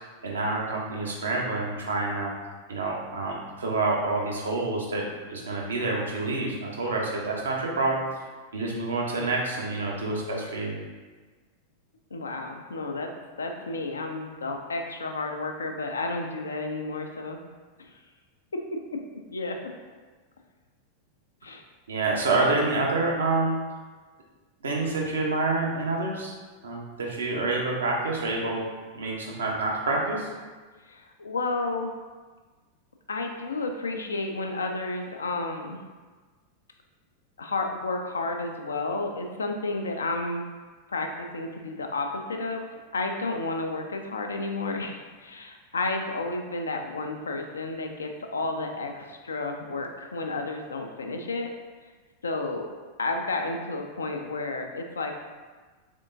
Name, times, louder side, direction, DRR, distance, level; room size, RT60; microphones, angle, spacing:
voice 1, 0.2-2.3 2.7-8.0 8.5-10.7 21.9-23.6 24.6-26.3 26.6-28.6 28.9-30.3, right 3 dB, 70° right, -2 dB, 0.7 m, -27 dB
voice 2, 12.1-13.1 13.4-17.4 17.8-18.0 19.3-19.6 21.4-21.6 30.9-31.9 33.1-35.8 37.4-40.4 40.9-42.7 42.9-51.5 52.2-52.7 53.0-55.2, left 3 dB, 70° left, 3 dB, 0.4 m, -31 dB
3.5 x 3.5 x 2.5 m, 1.4 s
figure-of-eight pair, 90°, 0 cm